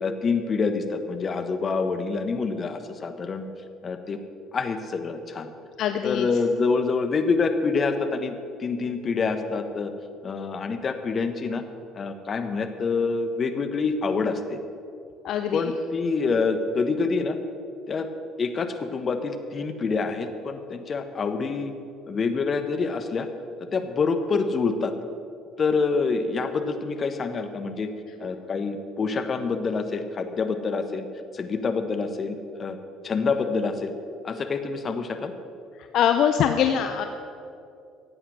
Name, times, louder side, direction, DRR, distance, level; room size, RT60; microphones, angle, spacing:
voice 1, 0.0-3.5 3.8-4.2 4.5-5.5 6.0-9.9 10.2-11.6 11.9-14.6 15.5-17.4 17.9-18.1 18.4-21.7 22.1-23.3 23.7-24.9 25.6-27.9 28.2-31.1 31.3-32.8 33.0-33.9 34.2-35.3, left 4 dB, 40° left, 8 dB, 1.3 m, -26 dB
voice 2, 5.8-6.3 15.2-15.7 35.9-37.1, left 8 dB, 60° left, 7 dB, 0.6 m, -23 dB
15.0 x 8.8 x 6.3 m, 2.6 s
hypercardioid pair, 60°, 0 cm